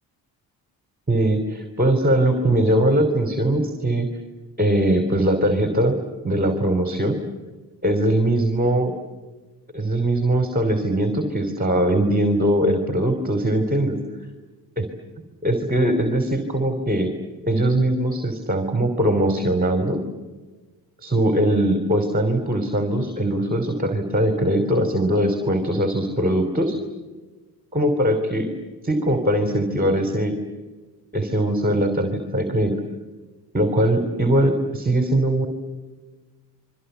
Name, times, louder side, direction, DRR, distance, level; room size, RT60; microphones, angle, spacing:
voice 1, 1.1-4.1 4.6-5.9 6.2-7.2 7.8-8.9 9.7-14.0 14.8-14.9 15.4-17.1 17.4-20.0 21.0-26.8 27.7-28.5 28.8-30.4 31.1-32.7 33.5-35.5, right 1 dB, 20° right, 6 dB, 3.2 m, -21 dB
27.0 x 23.0 x 8.1 m, 1.3 s
cardioid pair, 80°, 43 cm